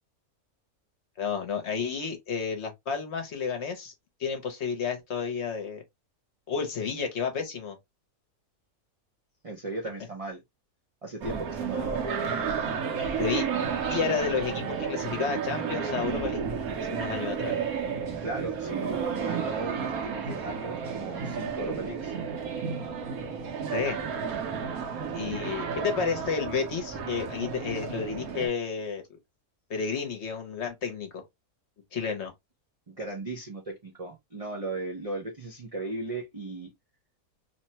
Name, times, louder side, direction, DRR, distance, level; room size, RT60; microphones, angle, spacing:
voice 1, 1.2-3.9 4.2-5.8 6.5-7.8 13.2-13.5 13.9-16.4 16.8-17.6 23.7-24.0 25.1-29.0 29.7-31.2 31.9-32.3, left 6 dB, 55° left, 0.9 m, -31 dB
voice 2, 9.4-10.4 11.0-11.9 18.2-22.1 32.9-36.7, right 2 dB, 60° right, 0.3 m, -37 dB
sound 1, 11.2-28.5, right 6 dB, 80° right, 1.2 m, -32 dB
3.0 x 2.1 x 2.7 m
omnidirectional pair, 1.5 m